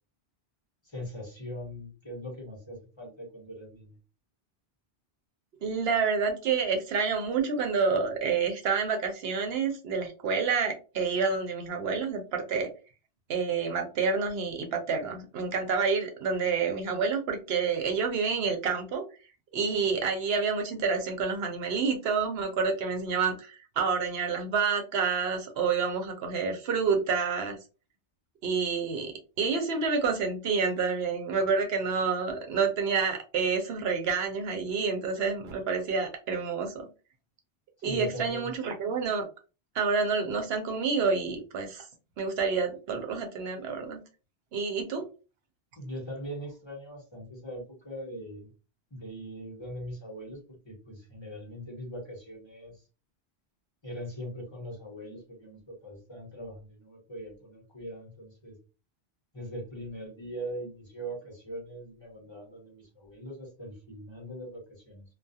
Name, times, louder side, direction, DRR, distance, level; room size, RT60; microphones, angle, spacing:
voice 1, 0.8-3.9 37.8-38.5 45.7-48.5 48.9-52.8 53.8-58.6 59.3-65.0, equal, 25° left, -2 dB, 1.0 m, -41 dB
voice 2, 5.6-12.7 13.3-19.0 19.5-27.6 28.4-36.9 37.8-39.2 39.7-41.9 42.2-44.0 44.5-45.0, right 5 dB, 70° right, 4 dB, 0.8 m, -28 dB
2.3 x 2.3 x 2.6 m, 0.32 s
omnidirectional pair, 1.1 m